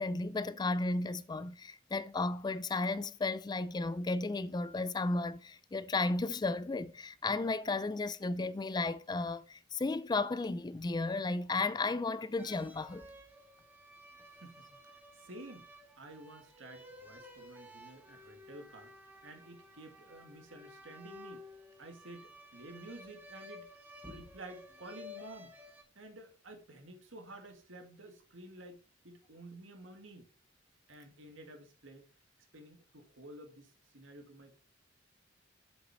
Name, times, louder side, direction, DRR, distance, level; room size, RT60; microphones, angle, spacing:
voice 1, 0.0-13.0, left 3 dB, 20° left, 0.3 m, -34 dB
sound 1, 12.4-25.8, left 1 dB, 10° right, 1.4 m, -53 dB
voice 2, 14.9-15.7 16.0-21.5 21.8-23.7 24.0-25.5 25.9-30.3 30.9-32.0 32.5-34.6, right 1 dB, 80° right, 2.2 m, -51 dB
7.8 x 7.2 x 4.3 m
head